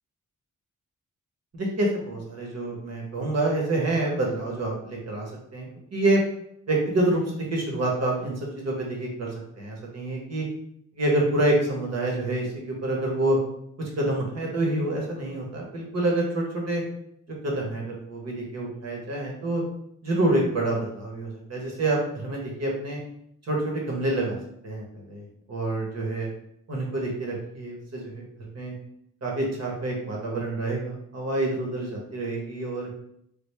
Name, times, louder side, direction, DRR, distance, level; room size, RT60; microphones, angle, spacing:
voice 1, 1.5-6.2 6.7-10.5 10.9-13.4 13.8-16.8 17.4-19.6 20.0-23.0 23.5-24.4 24.6-26.3 26.7-28.2 28.5-28.7 29.2-32.9, right 2 dB, 50° right, -1 dB, 1.0 m, -27 dB
3.4 x 2.3 x 3.2 m, 0.74 s
wide cardioid pair, 110°, 32 cm